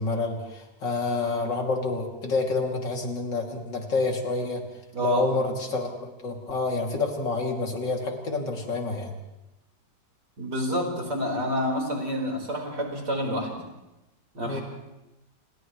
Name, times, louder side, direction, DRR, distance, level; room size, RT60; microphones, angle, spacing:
voice 1, 0.0-4.6 5.0-9.1 14.5-14.6, left 3 dB, 90° left, 0 dB, 3.6 m, -28 dB
voice 2, 4.9-5.3 10.4-13.6 14.3-14.6, equal, 70° right, 0 dB, 5.3 m, -28 dB
29.5 x 28.5 x 3.2 m, 0.97 s
omnidirectional pair, 1.9 m